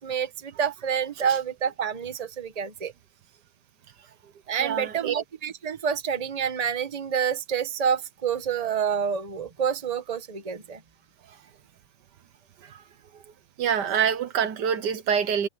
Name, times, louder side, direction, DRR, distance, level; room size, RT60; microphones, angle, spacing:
voice 1, 0.0-2.9 4.5-10.8, right 7 dB, 25° right, 1.2 m, -28 dB
voice 2, 4.6-5.2 12.6-12.8 13.6-15.5, right 8 dB, 70° right, 1.5 m, -26 dB
omnidirectional pair, 1.9 m